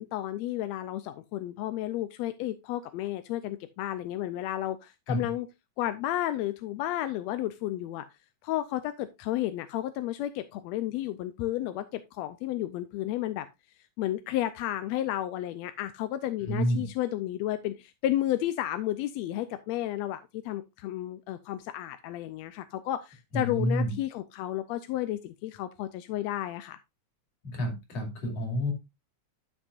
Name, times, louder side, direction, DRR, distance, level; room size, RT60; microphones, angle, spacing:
voice 1, 0.0-5.5 5.8-8.0 8.4-13.5 14.0-26.8, left 13 dB, 80° left, 10 dB, 1.7 m, -32 dB
voice 2, 16.5-16.9 23.3-23.9 27.5-28.7, equal, 60° left, 2 dB, 3.8 m, -29 dB
12.0 x 6.2 x 2.5 m, 0.22 s
omnidirectional pair, 3.3 m